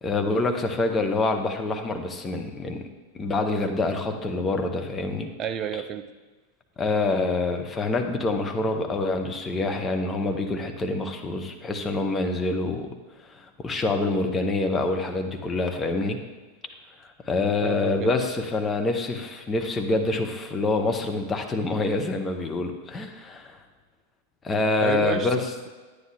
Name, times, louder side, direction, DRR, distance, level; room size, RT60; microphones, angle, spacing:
voice 1, 0.0-2.9 3.1-5.3 5.7-5.8 6.8-12.9 13.2-16.2 17.0-23.6 24.4-25.5, left 3 dB, 15° left, 4 dB, 0.9 m, -26 dB
voice 2, 5.4-6.1 17.6-18.1 24.8-25.7, right 8 dB, 30° right, 9 dB, 0.5 m, -31 dB
9.6 x 9.3 x 3.3 m, 1.4 s
figure-of-eight pair, 90°, 0 cm